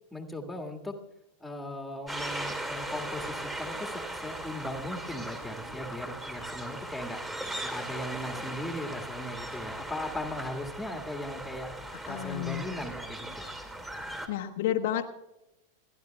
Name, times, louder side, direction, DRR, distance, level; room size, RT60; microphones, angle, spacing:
voice 1, 0.1-0.9 1.4-7.2 7.6-11.7 12.1-13.5, left 1 dB, 5° left, 2 dB, 1.8 m, -38 dB
sound 1, 2.1-14.3, right 1 dB, 10° right, 2.6 m, -38 dB
voice 2, 12.1-12.6 14.3-15.0, left 11 dB, 50° left, 5 dB, 0.9 m, -30 dB
29.5 x 11.5 x 2.3 m, 0.93 s
figure-of-eight pair, 90°, 0 cm